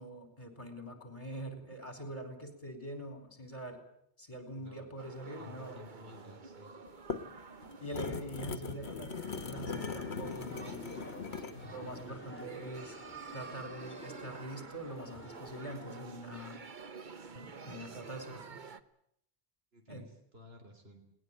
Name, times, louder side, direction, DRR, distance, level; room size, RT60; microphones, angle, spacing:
voice 1, 0.0-3.8 4.2-5.8 7.8-10.9 11.7-13.0 13.3-16.6 17.3-18.6 19.9-20.1, right 1 dB, 35° left, 8 dB, 4.7 m, -44 dB
voice 2, 4.5-4.9 5.4-6.7 11.5-12.1 19.7-21.0, left 2 dB, 70° right, 5 dB, 3.6 m, -53 dB
sound 1, 5.0-18.8, right 5 dB, 50° right, 1.2 m, -50 dB
sound 2, 6.9-11.6, left 5 dB, 85° left, 1.5 m, -40 dB
sound 3, 9.3-16.0, equal, 10° left, 3.7 m, -51 dB
20.5 x 19.0 x 9.1 m, 0.73 s
omnidirectional pair, 1.1 m